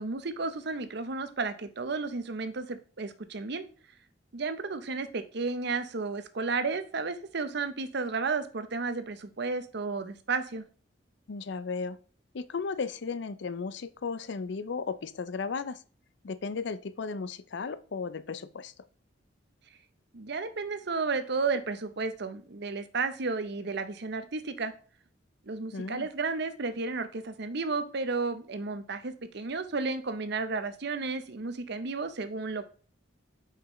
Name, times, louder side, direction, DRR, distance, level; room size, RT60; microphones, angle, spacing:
voice 1, 0.0-3.6 4.3-10.6 20.1-24.7 25.5-32.7, right 4 dB, 60° right, 10 dB, 0.7 m, -33 dB
voice 2, 11.3-12.0 12.3-15.8 16.2-18.7 25.7-26.1, left 4 dB, 65° left, 15 dB, 0.5 m, -35 dB
8.2 x 5.7 x 3.1 m, 0.43 s
head